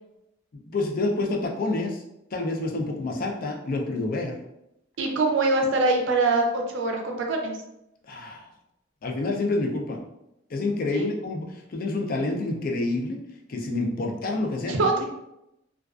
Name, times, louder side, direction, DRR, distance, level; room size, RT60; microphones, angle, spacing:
voice 1, 0.7-2.0 2.3-4.4 8.1-8.5 9.0-10.0 10.5-13.2 13.5-15.1, left 2 dB, 50° left, 1 dB, 0.4 m, -28 dB
voice 2, 5.0-7.5 10.9-11.1 14.7-15.1, right 3 dB, 75° right, 2 dB, 0.5 m, -23 dB
2.3 x 2.3 x 2.3 m, 0.85 s
head